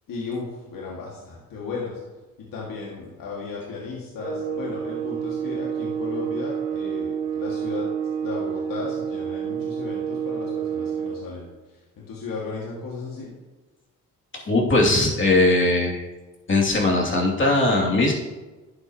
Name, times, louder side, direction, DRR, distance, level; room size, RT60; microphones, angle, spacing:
voice 1, 0.1-2.0 2.4-7.9 8.2-11.5 12.0-13.3, left 4 dB, 70° left, -4 dB, 2.0 m, -35 dB
sound 1, 4.2-11.2, right 7 dB, 90° right, 1.3 m, -29 dB
voice 2, 14.4-16.1 16.5-18.1, left 2 dB, 35° left, -2 dB, 2.6 m, -19 dB
11.0 x 8.0 x 2.9 m, 1.2 s
cardioid pair, 80°, 35 cm